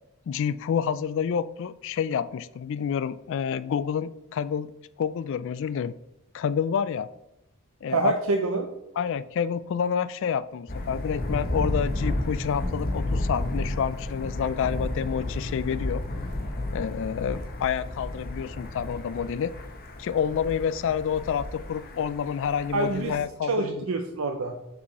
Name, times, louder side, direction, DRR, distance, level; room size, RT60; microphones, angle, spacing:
voice 1, 0.3-4.7 5.0-5.9 6.3-7.1 7.8-8.1 9.0-16.0 16.7-19.5 20.0-23.9, left 7 dB, 60° left, 15 dB, 0.3 m, -28 dB
voice 2, 7.9-8.7 22.7-23.2 23.5-24.5, right 3 dB, 70° right, 5 dB, 0.6 m, -26 dB
Thunder, 10.7-23.2, left 1 dB, 45° left, 0.9 m, -32 dB
6.0 x 4.7 x 4.1 m, 0.93 s
head